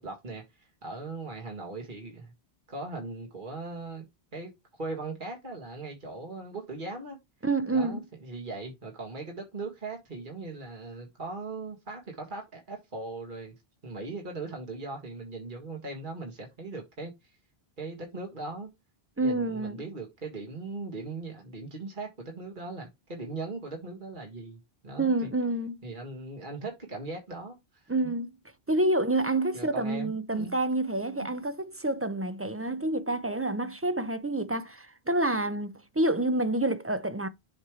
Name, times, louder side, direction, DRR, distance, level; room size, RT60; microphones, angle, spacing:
voice 1, 0.0-2.3 2.7-4.1 4.3-7.2 7.7-13.5 13.8-17.1 17.8-18.7 19.2-25.3 25.8-28.1 29.5-30.6 31.2-31.3, right 3 dB, 50° right, 2.0 m, -39 dB
voice 2, 7.4-8.0 19.2-19.8 25.0-25.7 27.9-28.3 28.7-37.3, right 2 dB, 20° right, 0.4 m, -28 dB
7.3 x 3.2 x 4.9 m
omnidirectional pair, 1.1 m